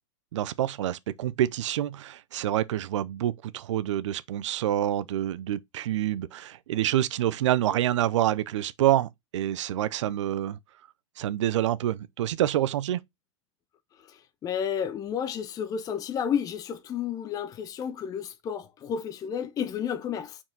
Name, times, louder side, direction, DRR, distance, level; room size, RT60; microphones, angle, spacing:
voice 1, 0.3-10.6 11.2-13.0, right 12 dB, 65° right, 0.6 m, -27 dB
voice 2, 14.4-20.4, left 8 dB, 20° left, 0.8 m, -31 dB
5.6 x 4.7 x 3.9 m
hypercardioid pair, 125°, 17 cm